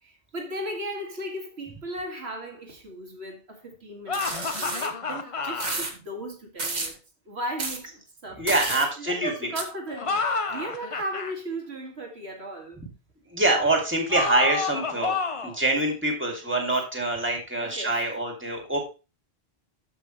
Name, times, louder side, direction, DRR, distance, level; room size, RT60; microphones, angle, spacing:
voice 1, 0.0-7.0 7.3-7.9 8.2-12.8 17.6-18.2, right 1 dB, 80° right, 2.3 m, -36 dB
sound 1, 4.1-5.8 9.9-11.3 14.1-15.6, left 4 dB, 35° left, 0.7 m, -29 dB
sound 2, 4.1-4.9 5.6-5.9 6.6-6.9 7.6-7.8 8.5-8.9 9.6-9.7, right 3 dB, 45° right, 1.4 m, -31 dB
voice 2, 8.4-9.3 13.3-15.2 15.4-18.8, right 2 dB, 10° right, 2.2 m, -25 dB
13.0 x 5.6 x 3.1 m
omnidirectional pair, 1.1 m